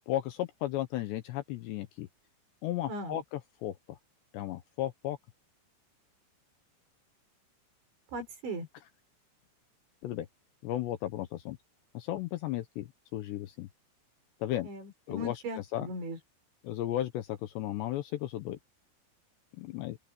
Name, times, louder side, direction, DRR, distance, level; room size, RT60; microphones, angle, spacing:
voice 1, 0.0-2.1 2.6-4.0 4.3-5.2 10.0-10.3 10.6-11.6 11.9-13.7 14.4-14.7 15.1-15.4 15.7-15.9 16.6-18.6 19.6-20.0, left 13 dB, 75° left, 2.8 m, -35 dB
voice 2, 2.9-3.2 8.1-8.7 14.6-16.2, equal, 65° right, 8.2 m, -38 dB
open air
omnidirectional pair, 5.8 m